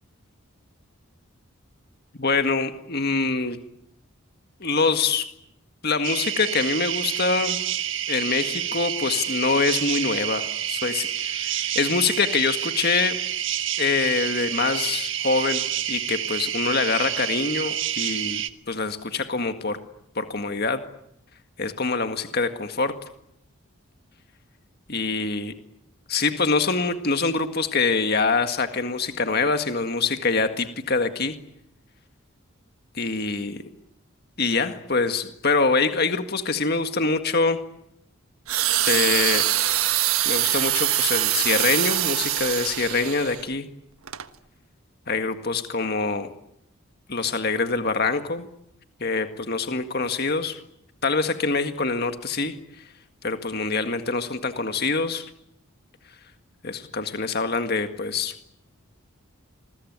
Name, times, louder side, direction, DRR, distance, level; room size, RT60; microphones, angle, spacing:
voice 1, 2.2-3.6 4.6-5.3 5.8-7.6 8.1-13.2 13.8-18.4 18.7-19.8 20.2-20.8 21.6-22.9 24.9-25.5 26.1-31.4 33.0-33.6 34.4-37.6 38.9-39.5 40.3-43.7 45.1-46.3 47.1-48.5 49.0-50.6 51.0-52.5 53.2-55.2 56.6-58.3, left 4 dB, 50° left, 8 dB, 1.9 m, -25 dB
sound 1, 6.0-18.5, right 11 dB, 60° right, 1.4 m, -28 dB
sound 2, 38.5-43.4 44.1-44.2, right 13 dB, 90° right, 1.4 m, -23 dB
27.5 x 21.5 x 9.5 m, 0.76 s
head